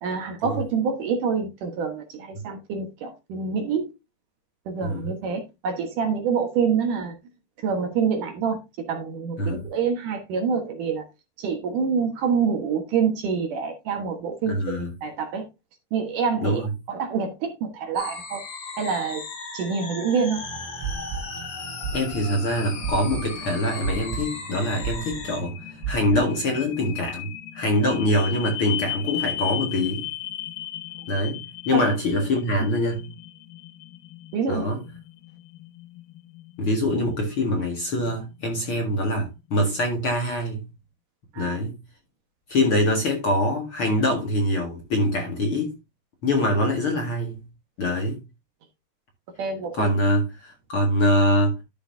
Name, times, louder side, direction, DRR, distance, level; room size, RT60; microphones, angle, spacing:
voice 1, 0.0-3.9 4.7-7.1 7.6-11.0 11.4-15.5 15.9-16.6 16.9-18.4 18.8-19.2 19.5-20.4 31.7-31.8 32.1-32.2 34.3-34.7 41.3-41.6 49.4-49.9, right 6 dB, 65° right, 2.6 m, -26 dB
voice 2, 14.5-14.9 16.4-16.6 21.9-25.6 25.9-27.3 27.5-30.0 31.1-33.1 34.5-34.8 36.6-40.6 41.4-41.7 42.5-45.7 46.2-47.4 47.8-48.2 49.8-51.6, left 1 dB, 45° left, 2.1 m, -24 dB
sound 1, 18.0-25.4, left 4 dB, 60° left, 4.2 m, -37 dB
sound 2, 20.4-26.9, right 6 dB, 85° right, 3.0 m, -35 dB
sound 3, 21.9-39.9, left 12 dB, 80° left, 2.2 m, -38 dB
12.0 x 6.7 x 2.7 m
omnidirectional pair, 4.4 m